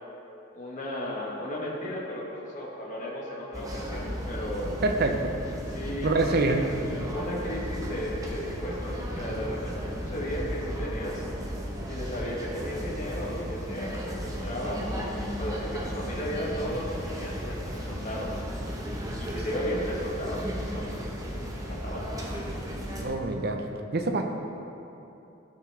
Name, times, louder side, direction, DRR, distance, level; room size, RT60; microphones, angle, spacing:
voice 1, 0.5-4.8 5.7-6.7 7.1-11.3 11.9-18.3 19.2-21.0 21.5-22.0, equal, 40° left, -4 dB, 1.3 m, -35 dB
sound 1, 3.5-23.0, equal, 20° right, 1.0 m, -35 dB
voice 2, 4.8-5.1 6.0-6.7 23.0-23.7 23.9-24.2, right 2 dB, 55° right, 4 dB, 0.8 m, -25 dB
15.0 x 5.9 x 3.4 m, 2.9 s
head